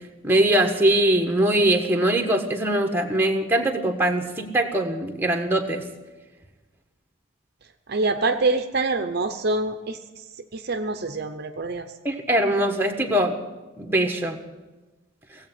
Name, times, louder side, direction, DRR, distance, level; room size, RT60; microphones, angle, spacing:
voice 1, 0.2-5.8 12.0-13.4 13.8-14.4, right 1 dB, 10° right, 3 dB, 1.3 m, -22 dB
voice 2, 7.9-10.2 10.5-11.9, right 3 dB, 50° right, 7 dB, 0.7 m, -25 dB
17.5 x 8.0 x 9.3 m, 1.2 s
head